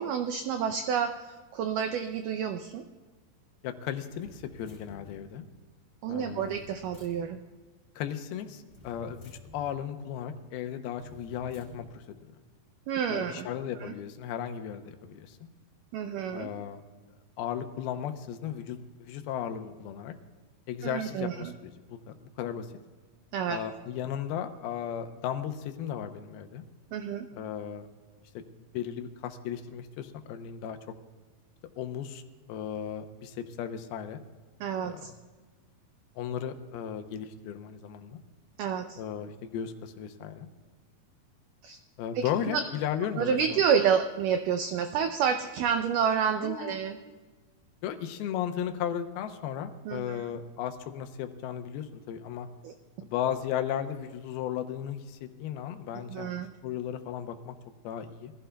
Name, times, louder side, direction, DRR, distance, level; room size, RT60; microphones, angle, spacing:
voice 1, 0.0-2.8 6.0-7.4 12.9-13.5 13.8-13.9 15.9-16.5 20.8-21.5 23.3-23.6 26.9-27.3 34.6-35.1 38.6-39.0 41.6-41.8 42.2-42.6 43.1-47.0 49.9-50.2 52.6-52.7 56.1-56.5, right 7 dB, 85° right, 7 dB, 1.8 m, -29 dB
voice 2, 3.6-5.4 6.1-6.6 8.0-12.0 13.1-15.5 16.3-16.8 17.4-20.1 20.7-22.7 23.5-26.6 27.3-27.9 28.3-28.4 28.7-30.8 31.8-34.2 34.8-35.1 36.2-38.2 39.0-40.5 42.0-43.6 46.4-46.8 47.8-52.5 53.0-56.4 56.6-57.6 57.8-58.3, left 9 dB, 80° left, 6 dB, 2.6 m, -35 dB
sound 1, 4.1-5.3 6.4-7.3 8.6-9.8 11.0-11.9, left 4 dB, 25° left, 2.9 m, -51 dB
22.0 x 15.0 x 2.3 m, 1.4 s
omnidirectional pair, 4.5 m